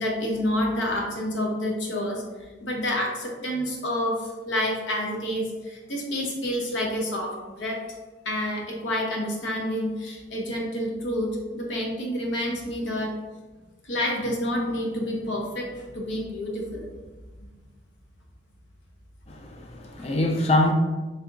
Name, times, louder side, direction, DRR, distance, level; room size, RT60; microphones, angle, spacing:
voice 1, 0.0-2.2 2.6-7.8 8.2-11.3 11.5-13.1 13.8-16.9 20.0-20.1, left 1 dB, 85° left, -1 dB, 0.7 m, -28 dB
voice 2, 19.3-20.7, left 1 dB, 35° left, 2 dB, 0.4 m, -24 dB
3.4 x 2.7 x 2.5 m, 1.2 s
head